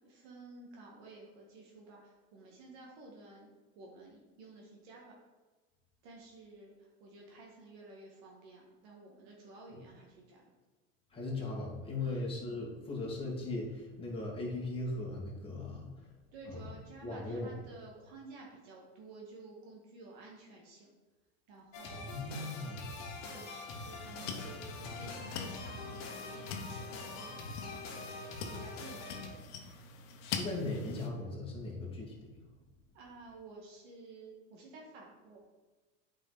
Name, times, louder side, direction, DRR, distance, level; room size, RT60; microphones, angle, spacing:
voice 1, 0.0-3.5 3.8-5.2 6.0-10.5 12.0-12.3 16.3-20.9 21.5-22.2 23.2-27.6 28.4-29.5 32.9-35.4, right 3 dB, 60° right, -1 dB, 1.8 m, -53 dB
voice 2, 11.1-15.9 16.5-16.6 17.0-17.5 21.9-22.8 30.3-32.2, left 2 dB, 15° left, -3 dB, 2.1 m, -38 dB
sound 1, 21.7-29.3, left 3 dB, 45° left, 1.8 m, -44 dB
sound 2, 23.7-31.1, left 5 dB, 70° left, 1.2 m, -44 dB
9.0 x 5.1 x 4.1 m, 1.3 s
supercardioid pair, 145°, 37 cm